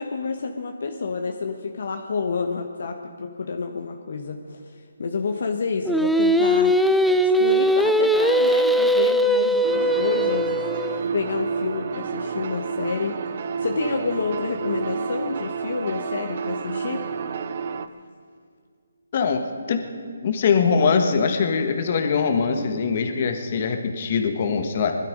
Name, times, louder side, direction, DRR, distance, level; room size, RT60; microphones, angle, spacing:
voice 1, 0.0-4.6 5.0-6.8 7.2-10.7 11.1-17.0, left 4 dB, 60° left, 4 dB, 1.1 m, -29 dB
Singing, 5.9-11.0, equal, ahead, 0.3 m, -20 dB
sound 1, 9.6-17.9, right 5 dB, 50° right, 0.7 m, -30 dB
voice 2, 19.1-19.8 20.2-25.0, left 5 dB, 40° left, 6 dB, 1.4 m, -22 dB
20.0 x 12.5 x 5.3 m, 2.1 s
hypercardioid pair, 155°, 0 cm